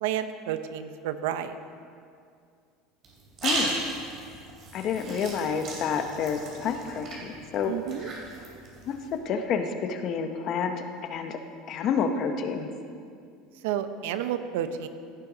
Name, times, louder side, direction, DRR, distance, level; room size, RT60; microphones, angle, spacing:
voice 1, 0.0-1.6 7.6-8.1 13.6-14.9, right 10 dB, 85° right, 10 dB, 0.7 m, -30 dB
sound 1, 3.0-9.2, right 2 dB, 35° right, 2.9 m, -36 dB
voice 2, 3.4-3.8 4.7-7.2 7.5-7.7 8.9-10.8 11.1-11.4 11.7-12.7, left 6 dB, 35° left, 7 dB, 0.8 m, -29 dB
16.0 x 11.0 x 4.0 m, 2.4 s
cardioid pair, 170°, 0 cm